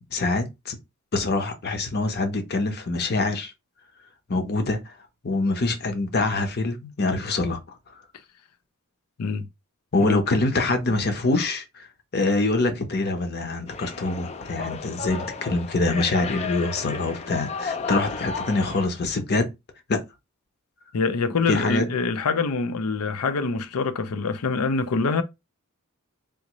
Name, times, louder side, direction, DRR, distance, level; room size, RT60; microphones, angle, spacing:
voice 1, 0.1-0.8 1.1-3.5 4.3-4.8 5.2-7.6 9.9-11.9 12.1-19.5 19.9-20.0 21.5-21.9, left 2 dB, 45° left, 0.8 m, -25 dB
sound 1, 13.7-18.9, left 5 dB, 30° left, 0.3 m, -33 dB
voice 2, 20.9-25.2, left 4 dB, 90° left, 0.5 m, -25 dB
3.6 x 2.5 x 3.0 m
head